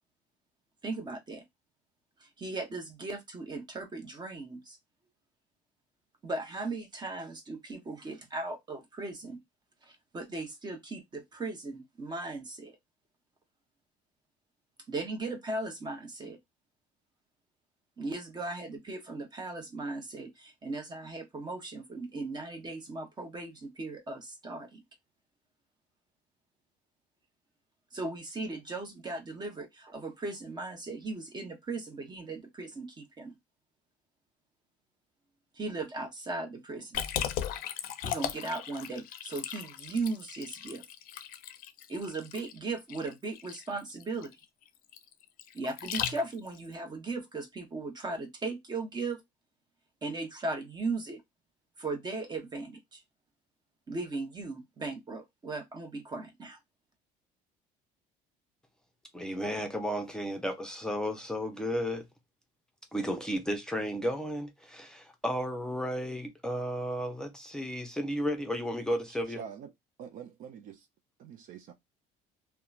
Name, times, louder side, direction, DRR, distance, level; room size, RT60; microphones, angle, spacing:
voice 1, 0.8-1.4 2.2-4.8 6.2-9.4 9.8-12.8 14.9-16.4 18.0-24.8 27.9-33.3 35.6-37.0 38.0-40.8 41.9-44.3 45.5-49.2 50.0-51.2 51.8-53.0 53.9-56.6, right 3 dB, 25° right, 0.9 m, -37 dB
Liquid, 36.9-46.6, left 10 dB, 60° left, 0.5 m, -37 dB
voice 2, 59.1-62.0 62.9-69.4, equal, 5° left, 0.7 m, -33 dB
voice 3, 69.1-69.7 70.0-70.9 71.2-71.7, right 7 dB, 55° right, 0.4 m, -45 dB
2.8 x 2.2 x 2.4 m
supercardioid pair, 95°, 16 cm